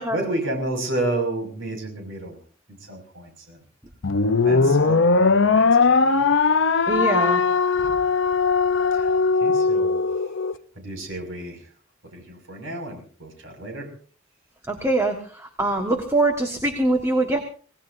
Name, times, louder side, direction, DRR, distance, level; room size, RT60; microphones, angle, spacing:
voice 1, 0.0-2.4 2.7-3.6 4.4-6.3 8.9-10.0 10.7-11.7 12.0-13.9, right 2 dB, 80° right, 4 dB, 6.1 m, -31 dB
sound 1, 4.0-10.5, left 4 dB, 70° left, 0.7 m, -19 dB
voice 2, 6.9-7.4 14.7-17.4, right 2 dB, 15° right, 4 dB, 1.5 m, -23 dB
26.5 x 18.5 x 2.7 m, 0.41 s
head